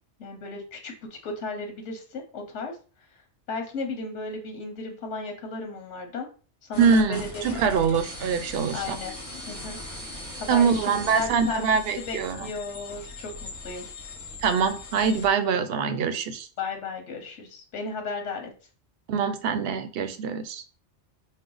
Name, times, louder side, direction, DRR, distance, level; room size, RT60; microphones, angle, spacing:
voice 1, 0.2-2.8 3.5-6.3 6.7-7.6 8.7-9.1 9.5-9.8 10.4-11.6 12.0-13.9 16.6-18.5, left 3 dB, 85° left, 3 dB, 1.2 m, -34 dB
sound 1, 6.7-15.3, left 2 dB, 40° left, 1.3 m, -39 dB
voice 2, 6.8-9.0 10.5-12.5 14.4-16.5 19.1-20.6, right 6 dB, 65° right, 10 dB, 0.8 m, -24 dB
5.4 x 2.1 x 3.8 m, 0.38 s
omnidirectional pair, 1.2 m